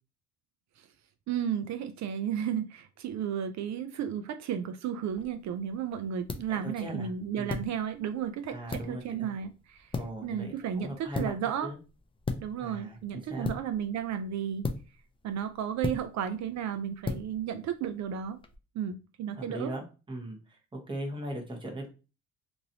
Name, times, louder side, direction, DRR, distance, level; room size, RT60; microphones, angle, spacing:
voice 1, 1.3-9.9 10.2-11.7 12.4-14.7 15.2-18.4 18.7-19.7, right 8 dB, 65° right, 9 dB, 0.4 m, -33 dB
sound 1, 5.1-18.6, left 3 dB, 20° left, 0.4 m, -40 dB
voice 2, 6.5-7.1 7.4-7.6 8.5-9.3 9.9-11.3 11.6-11.8 12.6-13.5 19.4-21.9, right 1 dB, 15° right, 0 dB, 1.1 m, -39 dB
3.0 x 2.6 x 2.7 m, 0.32 s
cardioid pair, 90°, 30 cm